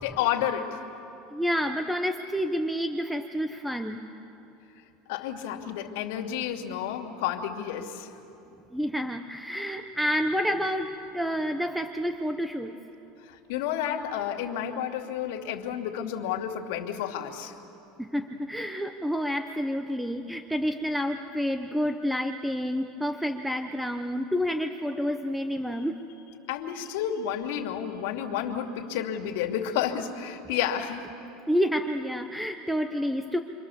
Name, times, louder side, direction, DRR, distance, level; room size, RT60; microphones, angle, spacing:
voice 1, 0.0-0.8 5.1-8.1 13.2-17.5 25.7-25.8 26.5-31.0, left 9 dB, 75° left, 2 dB, 2.4 m, -31 dB
voice 2, 1.3-4.0 8.7-12.7 18.0-26.0 31.5-33.4, equal, ahead, 7 dB, 0.8 m, -29 dB
30.0 x 25.0 x 7.1 m, 2.9 s
supercardioid pair, 140°, 0 cm